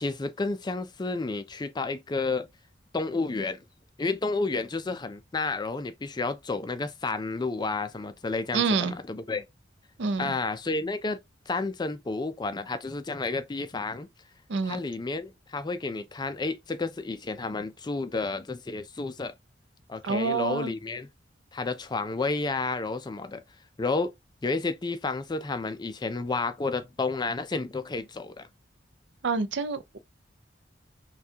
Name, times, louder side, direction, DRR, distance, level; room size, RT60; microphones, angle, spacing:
voice 1, 0.0-2.5 2.9-3.6 4.0-9.4 10.2-14.1 14.7-19.3 19.9-21.1 21.5-23.4 23.8-24.1 24.4-28.5, left 3 dB, 25° left, 0.4 m, -31 dB
voice 2, 8.5-8.9 10.0-10.3 14.5-14.8 20.0-20.7 29.2-30.0, right 4 dB, 70° right, 0.5 m, -27 dB
5.6 x 2.3 x 2.8 m
head